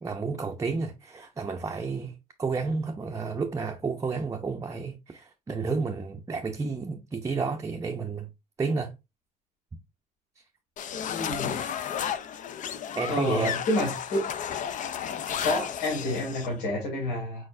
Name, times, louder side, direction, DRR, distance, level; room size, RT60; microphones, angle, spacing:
voice 1, 0.0-8.3 8.6-8.9 12.9-13.6, right 4 dB, 20° right, 0.6 m, -31 dB
sound 1, 10.8-16.5, left 8 dB, 50° left, 0.5 m, -33 dB
voice 2, 11.1-11.6 13.1-14.3 15.4-17.5, left 1 dB, 80° left, 2.5 m, -29 dB
4.5 x 4.3 x 2.5 m
cardioid pair, 110°, 17 cm